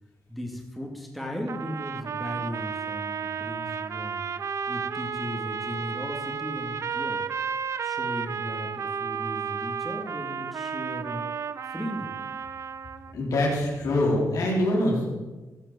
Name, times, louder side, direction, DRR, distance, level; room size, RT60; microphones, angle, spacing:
voice 1, 0.3-4.2 4.7-7.2 7.8-11.2 11.7-12.1, equal, ahead, 0 dB, 2.3 m, -36 dB
sound 1, 1.5-13.2, right 6 dB, 50° right, 0.5 m, -32 dB
voice 2, 13.1-15.1, left 1 dB, 70° left, -2 dB, 3.7 m, -24 dB
15.5 x 5.6 x 7.1 m, 1.2 s
cardioid pair, 80°, 6 cm